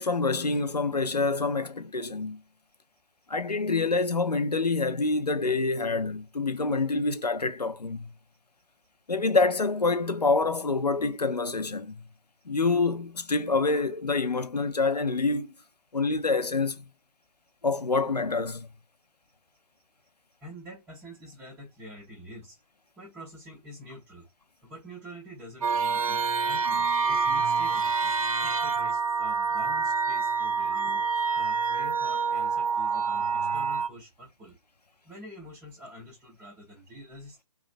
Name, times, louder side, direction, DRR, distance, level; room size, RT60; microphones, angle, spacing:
voice 1, 0.0-2.4 3.3-8.1 9.1-12.0 12.5-15.5 15.9-16.8 17.6-18.7, left 3 dB, 85° left, 0.6 m, -26 dB
voice 2, 20.4-22.6 23.0-24.3 24.6-28.1 28.4-34.6 35.0-37.4, left 1 dB, 5° right, 0.5 m, -46 dB
sound 1, 25.6-33.9, right 5 dB, 60° right, 0.5 m, -27 dB
3.1 x 2.4 x 2.5 m
figure-of-eight pair, 135°, 20 cm